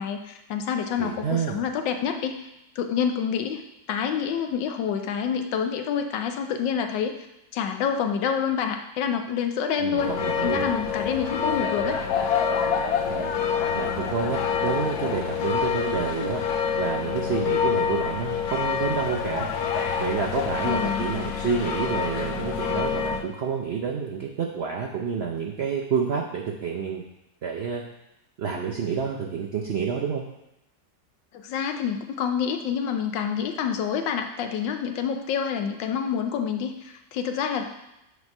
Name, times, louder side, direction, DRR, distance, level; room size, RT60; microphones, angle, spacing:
voice 1, 0.0-2.4 2.8-3.6 3.9-7.1 7.5-12.0 20.6-21.1 31.3-37.7, left 7 dB, 85° left, 6 dB, 1.4 m, -27 dB
voice 2, 1.0-1.6 9.8-10.7 13.1-13.4 13.7-16.4 16.8-19.5 20.0-27.0 27.4-27.8 28.4-30.2, right 6 dB, 90° right, 0 dB, 0.5 m, -29 dB
sound 1, 9.9-23.2, left 6 dB, 70° left, 1.1 m, -27 dB
8.1 x 3.1 x 5.3 m, 0.88 s
omnidirectional pair, 1.9 m